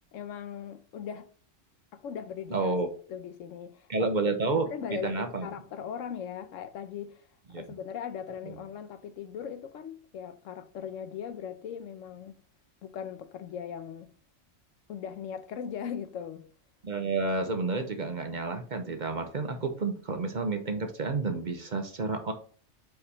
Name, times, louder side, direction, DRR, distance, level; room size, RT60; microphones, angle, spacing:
voice 1, 0.1-1.3 1.9-2.7 3.1-7.2 7.5-12.4 12.8-14.1 14.9-16.5, left 8 dB, 90° left, 1.1 m, -39 dB
voice 2, 2.5-2.9 3.9-4.7 5.0-5.5 7.5-7.8 8.4-8.5 16.8-22.3, right 3 dB, 45° right, 0.8 m, -30 dB
5.0 x 4.8 x 4.2 m
omnidirectional pair, 1.3 m